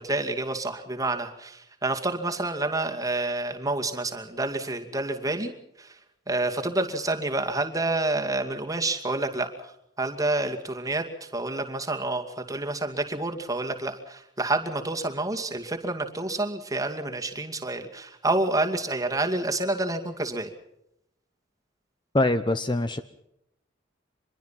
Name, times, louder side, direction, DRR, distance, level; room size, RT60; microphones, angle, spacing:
voice 1, 0.0-5.5 5.8-6.0 6.3-9.7 10.0-20.5, right 2 dB, 20° right, 4 dB, 2.4 m, -28 dB
voice 2, 22.1-23.0, left 2 dB, 25° left, 11 dB, 0.8 m, -23 dB
25.5 x 22.0 x 5.8 m, 0.81 s
head